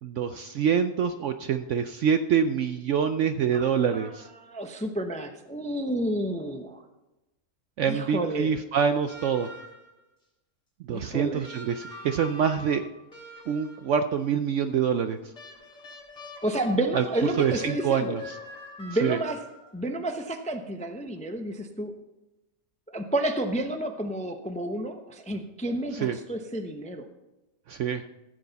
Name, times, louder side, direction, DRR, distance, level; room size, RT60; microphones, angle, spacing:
voice 1, 0.0-4.3 7.8-9.5 10.9-12.8 13.5-15.3 16.9-17.0 17.4-18.2 19.0-19.2 25.9-26.2 27.7-28.0, right 7 dB, 70° right, 9 dB, 0.7 m, -26 dB
voice 2, 3.5-4.1 4.4-6.8 7.9-8.5 10.9-11.5 16.4-18.2 18.8-19.4 19.7-21.9 22.9-27.1, right 1 dB, 10° left, 5 dB, 0.4 m, -30 dB
sound 1, 9.1-10.0 11.4-14.0 15.3-19.8 21.2-21.3, left 1 dB, 25° left, 3.6 m, -44 dB
14.5 x 7.9 x 4.0 m, 0.99 s
omnidirectional pair, 1.7 m